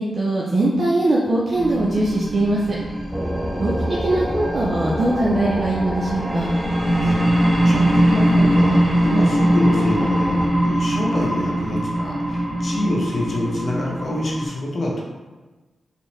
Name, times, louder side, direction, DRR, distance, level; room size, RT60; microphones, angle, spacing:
voice 1, 0.0-2.8 3.6-3.7 4.0-6.5, right 2 dB, 50° right, -5 dB, 0.5 m, -21 dB
sound 1, 1.5-14.5, equal, 30° right, 1.5 m, -21 dB
sound 2, 3.1-10.5, equal, ahead, 0.6 m, -29 dB
voice 2, 7.6-15.0, left 1 dB, 60° left, -3 dB, 0.9 m, -26 dB
3.4 x 2.7 x 3.1 m, 1.2 s
cardioid pair, 60°, 0 cm